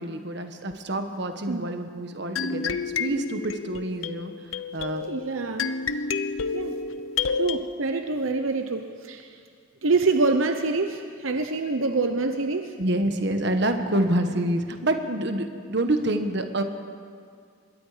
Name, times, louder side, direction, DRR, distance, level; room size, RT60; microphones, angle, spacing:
voice 1, 0.0-4.3 4.7-5.0 12.8-16.6, right 1 dB, 55° right, 6 dB, 1.5 m, -27 dB
sound 1, 2.4-7.6, left 5 dB, 80° left, 0.8 m, -30 dB
voice 2, 5.0-5.7 6.5-6.7 7.3-9.4 9.8-12.7, right 3 dB, 80° right, 6 dB, 0.9 m, -26 dB
25.5 x 21.5 x 5.1 m, 2.2 s
head